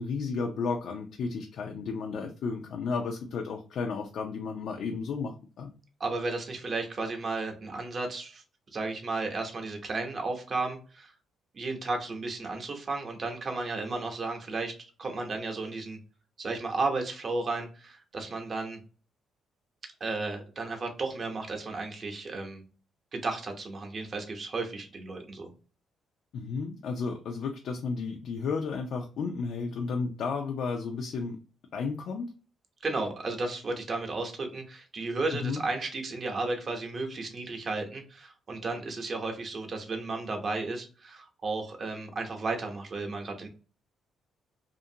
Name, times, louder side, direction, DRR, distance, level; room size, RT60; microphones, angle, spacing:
voice 1, 0.0-5.7 26.3-31.4 31.7-32.3 35.4-35.6, left 4 dB, 70° left, 3 dB, 0.4 m, -33 dB
voice 2, 6.0-8.4 8.7-11.1 11.5-14.7 15.0-16.0 16.4-18.8 20.0-22.6 23.1-25.5 32.8-43.5, right 3 dB, 45° right, 3 dB, 0.7 m, -33 dB
2.5 x 2.5 x 2.7 m, 0.38 s
cardioid pair, 90°, 0 cm